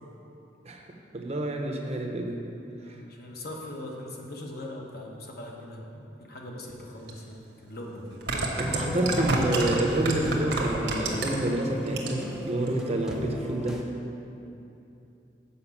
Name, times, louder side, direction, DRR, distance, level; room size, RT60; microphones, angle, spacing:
voice 1, 1.1-2.4 8.6-13.8, right 1 dB, 35° right, 2 dB, 0.8 m, -28 dB
voice 2, 2.7-5.8 6.2-8.2, left 1 dB, 55° left, -1 dB, 1.1 m, -41 dB
sound 1, 7.1-7.2 8.1-11.5 11.9-12.4 12.7-12.8, right 2 dB, 65° right, 1.1 m, -29 dB
sound 2, 8.7-13.8, left 1 dB, 5° right, 0.5 m, -37 dB
7.0 x 5.2 x 7.1 m, 2.8 s
head